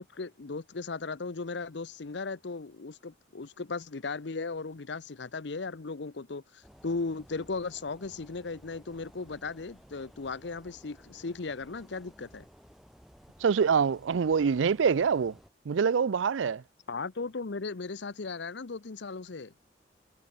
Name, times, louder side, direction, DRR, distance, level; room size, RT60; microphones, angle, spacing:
voice 1, 0.0-12.4 16.9-19.5, left 4 dB, 70° left, 0.7 m, -37 dB
sound 1, 6.6-15.5, equal, ahead, 1.4 m, -56 dB
voice 2, 13.4-15.4 15.7-16.6, right 6 dB, 85° right, 0.4 m, -25 dB
head